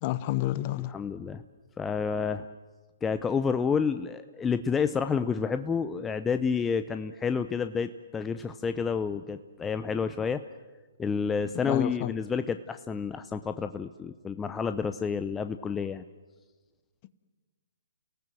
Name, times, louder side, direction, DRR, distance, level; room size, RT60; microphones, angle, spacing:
voice 1, 0.0-0.9 11.6-12.1, left 15 dB, 35° left, 15 dB, 1.1 m, -29 dB
voice 2, 0.8-1.4 1.8-2.5 3.0-10.4 11.0-16.0, left 6 dB, 10° left, 10 dB, 0.6 m, -29 dB
29.5 x 18.0 x 7.8 m, 1.3 s
hypercardioid pair, 135°, 0 cm